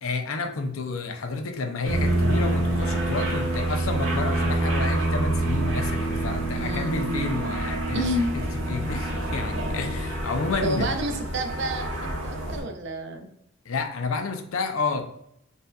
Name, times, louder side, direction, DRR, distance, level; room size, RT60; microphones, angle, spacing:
voice 1, 0.0-8.1 8.3-11.0 13.7-15.0, left 3 dB, 70° left, 6 dB, 0.5 m, -30 dB
sound 1, 1.8-12.6, right 1 dB, 75° right, 1.3 m, -27 dB
voice 2, 6.5-7.4 7.9-8.5 10.6-13.3, right 1 dB, 55° right, 6 dB, 0.5 m, -30 dB
5.2 x 2.6 x 2.2 m, 0.76 s
head